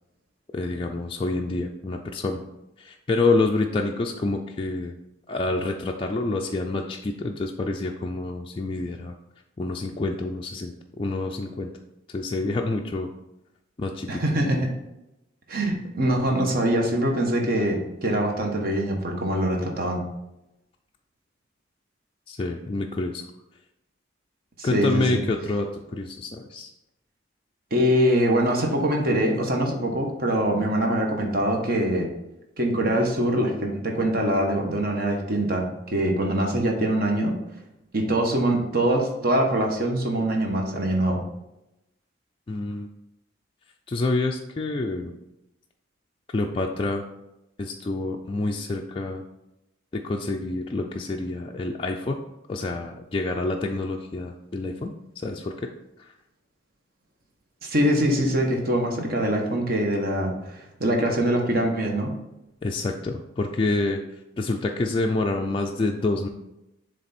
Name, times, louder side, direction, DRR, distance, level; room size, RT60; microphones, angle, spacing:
voice 1, 0.5-2.4 2.8-4.9 5.3-9.2 9.6-11.7 12.1-13.1 13.8-14.2 22.3-23.3 24.6-26.7 42.5-42.9 43.9-45.1 46.3-47.1 47.6-49.2 49.9-52.2 52.5-55.7 56.0-56.1 62.6-64.0 64.4-66.3, left 2 dB, 25° left, 1 dB, 0.3 m, -27 dB
voice 2, 14.1-14.7 15.5-20.0 24.6-25.2 27.7-32.1 32.6-37.3 37.9-41.2 57.6-62.1, right 1 dB, 50° right, 1 dB, 1.1 m, -23 dB
7.2 x 3.4 x 4.2 m, 0.90 s
head